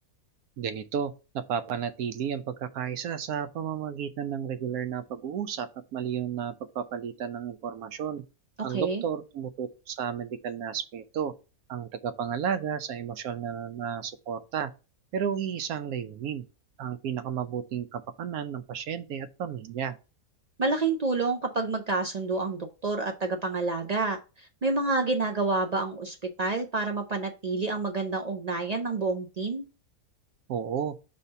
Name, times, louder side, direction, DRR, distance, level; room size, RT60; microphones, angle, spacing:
voice 1, 0.6-8.2 8.6-11.3 11.7-14.7 15.1-16.5 16.8-20.0 30.5-31.0, right 8 dB, 85° right, 1.1 m, -32 dB
voice 2, 8.7-9.0 20.6-29.6, right 3 dB, 65° right, 0.4 m, -28 dB
5.6 x 3.3 x 5.4 m
omnidirectional pair, 1.5 m